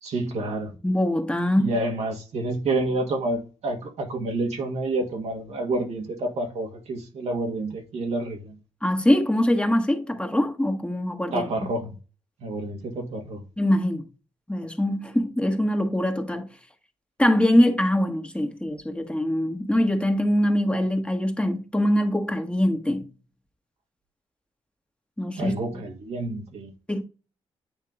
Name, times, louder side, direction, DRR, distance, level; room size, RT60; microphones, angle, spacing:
voice 1, 0.0-0.7 1.6-8.5 11.3-11.9 12.4-13.4 25.4-26.7, right 2 dB, 75° right, 1.8 m, -29 dB
voice 2, 0.8-1.7 8.8-11.5 13.6-14.0 14.5-16.5 17.2-23.1 25.2-25.5 26.9-27.0, left 1 dB, 10° left, 1.3 m, -23 dB
8.9 x 3.6 x 3.8 m
cardioid pair, 60°, 11 cm